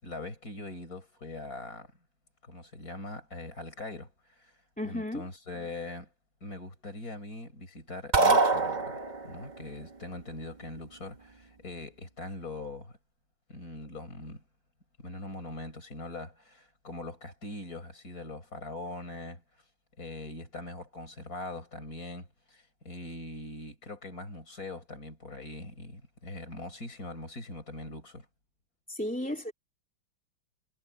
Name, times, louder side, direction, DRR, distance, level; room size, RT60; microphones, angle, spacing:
voice 1, 0.0-1.9 2.4-4.5 4.8-6.1 6.4-13.0 13.5-14.4 15.0-19.4 20.0-28.3, left 2 dB, 45° left, 6.9 m, -42 dB
voice 2, 4.8-5.3 28.9-29.5, left 1 dB, 5° left, 2.8 m, -33 dB
sound 1, 8.1-9.4, right 3 dB, 25° right, 1.4 m, -24 dB
omnidirectional pair, 2.2 m